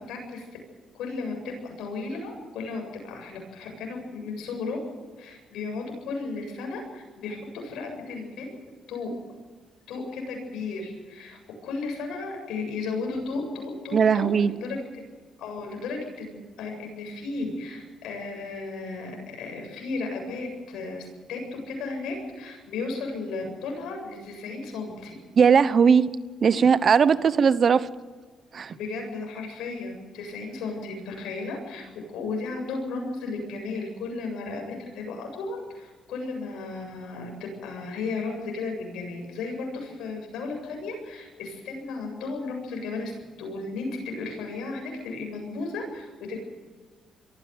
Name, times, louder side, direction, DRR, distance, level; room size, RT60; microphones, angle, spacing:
voice 1, 0.1-0.5 0.9-4.8 5.2-8.5 8.9-9.1 9.9-15.0 15.4-21.4 21.7-25.2 28.7-46.4, left 3 dB, 85° left, 2 dB, 7.9 m, -34 dB
voice 2, 13.9-14.5 25.4-26.1 26.4-27.9 28.5-28.8, right 6 dB, 50° right, 16 dB, 0.9 m, -19 dB
22.5 x 15.0 x 9.5 m, 1.4 s
cardioid pair, 90°, 0 cm